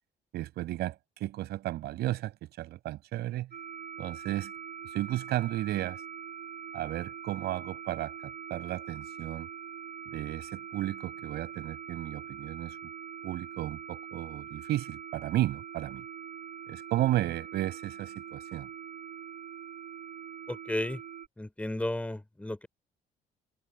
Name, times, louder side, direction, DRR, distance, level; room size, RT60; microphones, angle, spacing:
voice 1, 0.3-3.5 4.0-4.5 4.9-6.0 6.7-9.5 10.1-12.8 13.2-16.0 16.7-18.7, right 15 dB, 75° right, 5.6 m, -33 dB
sound 1, 3.5-21.3, right 8 dB, 50° right, 3.4 m, -43 dB
voice 2, 20.5-21.0 21.4-22.7, left 1 dB, 10° left, 3.5 m, -33 dB
cardioid pair, 110°, 17 cm